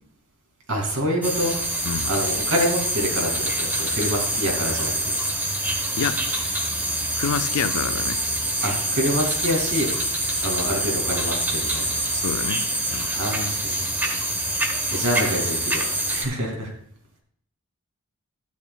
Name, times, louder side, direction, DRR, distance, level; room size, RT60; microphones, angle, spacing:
voice 1, 0.7-1.6 2.1-5.1 8.6-9.9 10.4-12.0 13.1-13.7 14.9-16.7, equal, 65° right, 0 dB, 2.5 m, -26 dB
sound 1, 1.2-16.2, right 1 dB, 10° right, 0.9 m, -25 dB
voice 2, 7.2-8.2 12.1-13.1 13.8-13.9, left 6 dB, 80° left, 12 dB, 0.5 m, -28 dB
12.0 x 9.1 x 2.3 m, 0.63 s
head